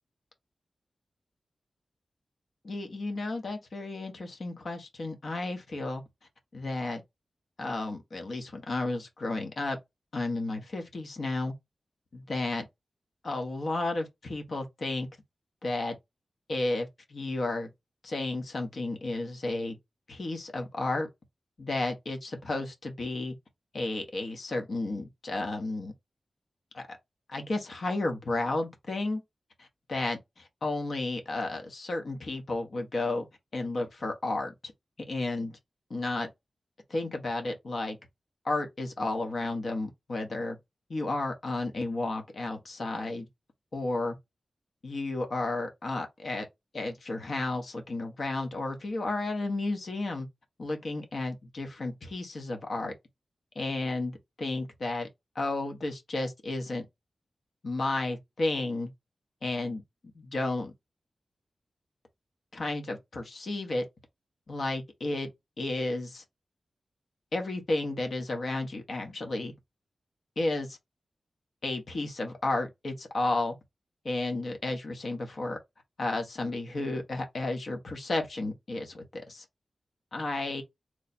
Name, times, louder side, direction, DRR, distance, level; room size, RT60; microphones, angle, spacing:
voice 1, 2.6-6.0 6.5-7.0 7.6-9.8 10.1-11.5 12.1-12.6 13.2-15.1 15.6-16.0 16.5-17.7 18.0-19.8 20.1-21.1 21.6-23.4 23.7-25.9 26.7-27.0 27.3-29.2 29.6-33.3 33.5-34.5 35.1-35.6 35.9-36.3 36.9-38.0 38.4-40.6 40.9-43.3 43.7-44.2 44.8-46.5 46.7-50.3 50.6-52.9 53.5-55.1 55.3-56.9 57.6-58.9 59.4-59.8 60.1-60.7 62.5-63.8 64.5-65.3 65.6-66.2 67.3-69.5 70.4-70.8 71.6-73.6 74.0-75.6 76.0-79.4 80.1-80.6, left 2 dB, 70° left, 1.0 m, -32 dB
3.2 x 2.1 x 4.1 m
cardioid pair, 40°, 0 cm